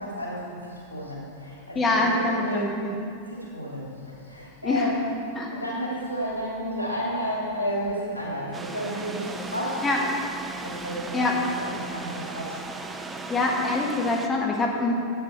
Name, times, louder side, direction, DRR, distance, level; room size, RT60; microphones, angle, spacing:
voice 1, 0.0-2.9 3.3-5.2 5.5-9.8 10.5-12.6, equal, 85° right, -4 dB, 2.7 m, -32 dB
voice 2, 1.7-2.9 4.6-4.9 5.3-5.5 9.8-10.0 11.1-11.3 13.3-14.9, left 2 dB, 20° left, -1 dB, 1.6 m, -24 dB
sound 1, 8.5-14.3, right 3 dB, 15° right, 0.6 m, -37 dB
10.0 x 8.7 x 4.5 m, 2.4 s
figure-of-eight pair, 90°, 0 cm